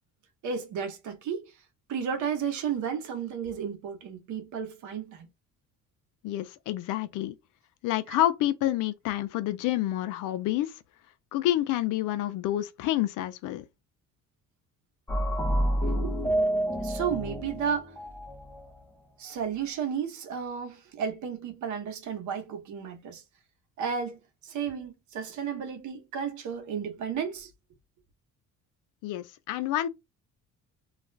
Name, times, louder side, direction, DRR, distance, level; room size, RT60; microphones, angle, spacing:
voice 1, 0.4-1.4 1.9-5.3 15.8-16.1 16.8-17.9 19.2-23.2 23.8-27.5, right 7 dB, 70° right, 1.0 m, -33 dB
voice 2, 6.2-7.3 7.8-10.7 11.3-13.6 29.0-29.9, left 14 dB, 80° left, 0.5 m, -28 dB
sound 1, 15.1-18.7, right 1 dB, 5° left, 0.6 m, -28 dB
2.4 x 2.3 x 3.1 m
cardioid pair, 125°, 31 cm